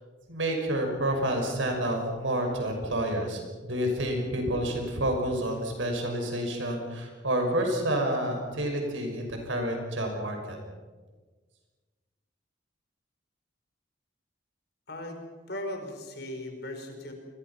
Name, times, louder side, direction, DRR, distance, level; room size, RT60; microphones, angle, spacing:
voice 1, 0.3-10.6, right 1 dB, 85° right, 3 dB, 6.2 m, -29 dB
voice 2, 14.9-17.1, left 1 dB, 55° left, 4 dB, 4.7 m, -38 dB
29.0 x 21.5 x 5.9 m, 1.4 s
head